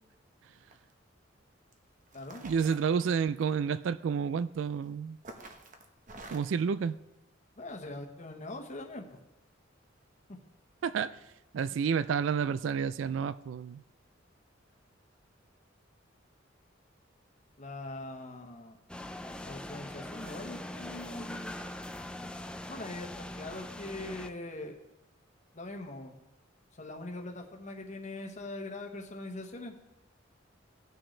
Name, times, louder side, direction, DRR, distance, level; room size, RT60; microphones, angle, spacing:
sound 1, 0.6-0.9 1.7-1.8 2.1-3.5 4.6-4.9 5.2-6.6, right 2 dB, 40° right, 1.0 m, -48 dB
voice 1, 2.4-5.2 6.3-7.0 10.8-11.2 11.5-13.8, right 6 dB, 75° right, 0.3 m, -30 dB
voice 2, 7.6-9.2 17.6-18.8 19.4-21.6 22.7-24.8 25.5-26.2 26.7-29.8, left 2 dB, 40° left, 1.1 m, -42 dB
sound 2, 18.9-24.3, left 1 dB, 5° left, 0.4 m, -42 dB
18.5 x 6.3 x 3.3 m
head